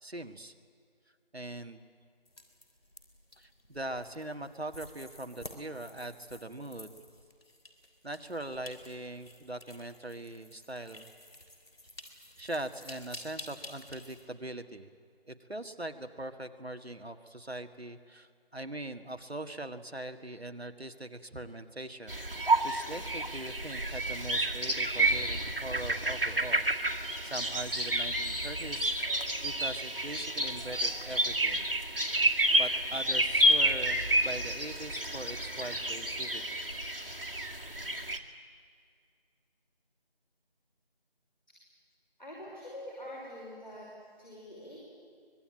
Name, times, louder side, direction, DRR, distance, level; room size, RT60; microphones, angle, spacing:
voice 1, 0.0-0.5 1.3-1.8 3.4-7.0 8.0-11.1 12.4-14.9 15.3-29.1 29.4-31.7 32.5-36.4, right 1 dB, 90° right, 7 dB, 1.9 m, -41 dB
sound 1, 2.2-14.2, left 1 dB, 70° left, 3.5 m, -51 dB
sound 2, 22.1-38.2, right 1 dB, 65° right, 2.1 m, -30 dB
voice 2, 42.2-43.9 44.2-44.8, left 1 dB, 50° left, -4 dB, 5.6 m, -45 dB
24.0 x 21.5 x 9.1 m, 2.2 s
figure-of-eight pair, 175°, 31 cm